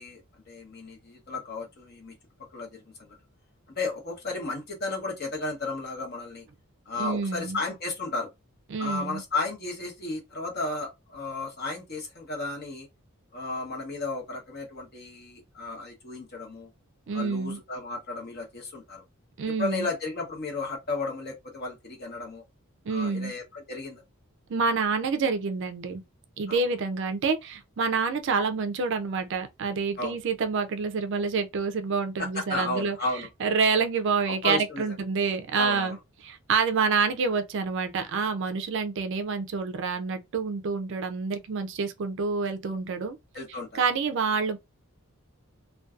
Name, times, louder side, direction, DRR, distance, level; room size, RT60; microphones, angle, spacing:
voice 1, 0.0-2.1 2.5-3.2 3.7-6.4 6.9-8.3 8.8-12.9 13.3-16.7 17.1-19.0 19.6-22.4 22.9-24.0 26.5-26.6 30.0-30.1 32.2-33.3 34.3-34.9 35.5-36.0 43.3-43.8, left 3 dB, 45° left, 0.9 m, -34 dB
voice 2, 7.0-7.6 8.7-9.2 17.1-17.6 19.4-19.9 22.9-23.3 24.5-26.0 26.4-33.0 33.4-36.0 36.2-43.2 43.7-44.6, right 5 dB, 55° right, 0.4 m, -27 dB
2.5 x 2.2 x 2.3 m
head